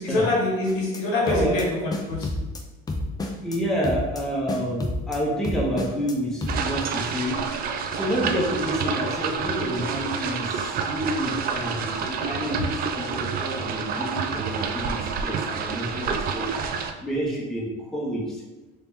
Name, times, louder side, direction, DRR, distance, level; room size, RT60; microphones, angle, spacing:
voice 1, 0.0-2.3, left 2 dB, 85° left, -3 dB, 1.5 m, -25 dB
sound 1, 0.7-1.0 1.3-1.6 1.9-2.6 2.9-3.6 3.8-4.2 4.5-5.2 5.4-6.1 6.4-6.6, left 2 dB, 20° left, 0.5 m, -29 dB
voice 2, 3.4-18.4, equal, ahead, -4 dB, 0.8 m, -29 dB
sound 2, 6.5-16.9, right 6 dB, 45° right, 0.4 m, -28 dB
2.9 x 2.8 x 3.5 m, 1.1 s
supercardioid pair, 100°, 21 cm